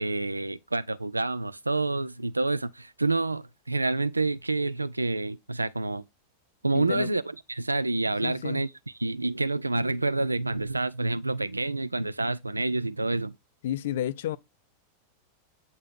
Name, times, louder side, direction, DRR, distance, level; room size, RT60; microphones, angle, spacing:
voice 1, 0.0-6.0 6.6-7.2 7.5-8.7 9.0-13.3, right 2 dB, 85° right, 0.4 m, -28 dB
voice 2, 6.7-7.1 8.2-8.7 13.6-14.4, left 11 dB, 55° left, 0.5 m, -31 dB
8.5 x 4.0 x 4.5 m
figure-of-eight pair, 90°, 0 cm